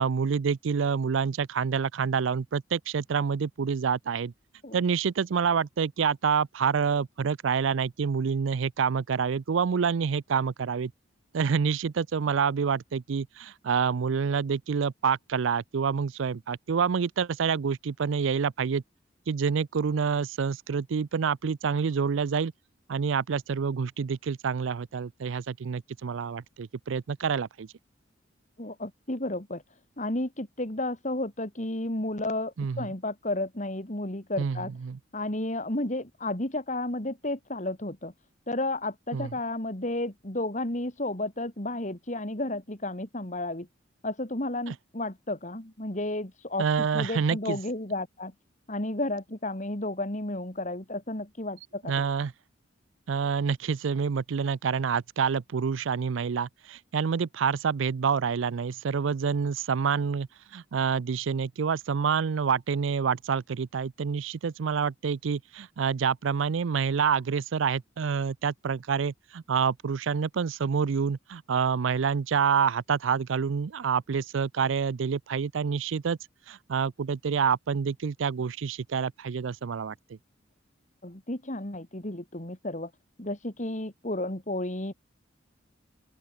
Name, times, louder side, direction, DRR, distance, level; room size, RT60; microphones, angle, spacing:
voice 1, 0.0-4.3 4.7-10.9 11.3-18.8 19.3-22.5 22.9-27.7 32.6-32.9 34.4-34.6 34.8-35.0 39.1-39.3 44.7-44.8 46.6-47.6 51.9-52.3 53.1-60.3 60.5-76.2 76.5-79.9, right 6 dB, 75° right, 0.4 m, -27 dB
voice 2, 28.6-29.6 30.0-34.7 35.1-38.1 38.5-43.7 44.0-48.3 48.7-51.9 81.0-82.9 83.2-84.9, left 1 dB, 40° left, 2.8 m, -32 dB
open air
head